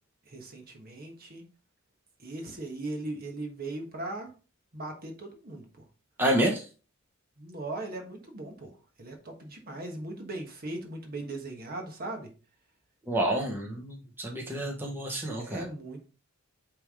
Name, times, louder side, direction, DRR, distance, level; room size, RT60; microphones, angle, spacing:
voice 1, 0.3-1.4 2.2-4.3 4.7-5.6 7.4-8.7 9.0-12.3 15.4-16.0, right 2 dB, 45° right, 3 dB, 1.3 m, -38 dB
voice 2, 6.2-6.6 13.1-15.6, right 1 dB, 10° right, -1 dB, 1.2 m, -29 dB
9.0 x 3.5 x 3.7 m, 0.35 s
head